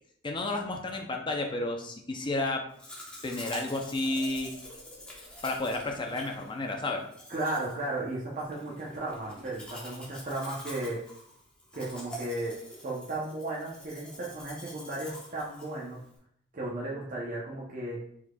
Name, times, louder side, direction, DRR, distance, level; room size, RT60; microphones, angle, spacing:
voice 1, 0.2-2.6 3.2-4.5 5.4-7.0, left 2 dB, 25° left, 2 dB, 0.6 m, -31 dB
Domestic sounds home sounds, 2.8-16.2, equal, 5° left, 1.0 m, -46 dB
voice 2, 7.3-11.0 11.7-12.6 12.8-16.0 16.5-18.0, right 2 dB, 40° right, -5 dB, 0.8 m, -35 dB
4.8 x 4.1 x 2.3 m, 0.69 s
head